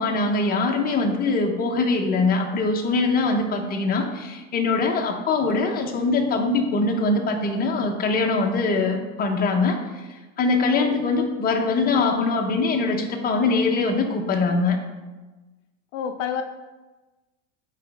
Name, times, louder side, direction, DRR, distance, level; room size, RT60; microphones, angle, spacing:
voice 1, 0.0-9.8 10.4-14.8, left 3 dB, 25° left, 2 dB, 1.0 m, -22 dB
voice 2, 15.9-16.4, left 8 dB, 70° left, 7 dB, 0.6 m, -29 dB
9.2 x 4.1 x 3.6 m, 1.2 s
supercardioid pair, 125°, 36 cm